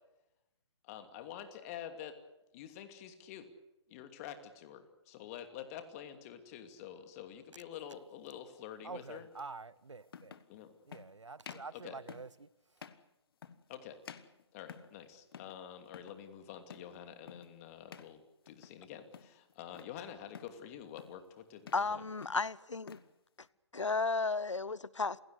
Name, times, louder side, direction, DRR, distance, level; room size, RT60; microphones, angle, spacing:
voice 1, 0.8-2.2 2.5-3.5 3.9-9.3 10.5-10.7 11.7-12.0 13.7-14.0 14.5-22.0, left 9 dB, 30° left, 2.6 m, -48 dB
sound 1, 7.9-8.1 9.4-9.5 10.1-10.5 10.9-11.1 11.4-11.7 12.1-12.4 12.8-13.1 13.4-13.8 14.0-15.0 15.3-15.6 15.9-16.2 16.7-17.0 17.3-17.5 17.9-18.2 18.5-18.8 19.1-19.9 20.3-20.6 21.0-21.3 21.6-21.9 22.2-23.1, left 7 dB, 50° left, 1.5 m, -52 dB
voice 2, 8.8-10.4 10.9-12.5, right 4 dB, 90° right, 0.9 m, -47 dB
voice 3, 21.7-23.0 23.7-25.2, left 4 dB, 90° left, 0.8 m, -33 dB
28.5 x 17.0 x 8.2 m
figure-of-eight pair, 140°, 15 cm